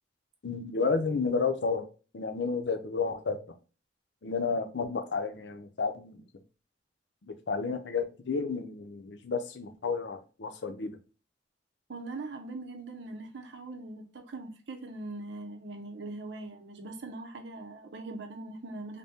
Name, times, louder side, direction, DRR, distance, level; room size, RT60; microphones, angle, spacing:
voice 1, 0.4-1.9 2.1-3.4 4.2-6.2 7.2-11.0, left 4 dB, 75° left, 0.6 m, -31 dB
voice 2, 11.9-19.0, right 2 dB, 75° right, 0.7 m, -41 dB
4.0 x 2.2 x 3.5 m
head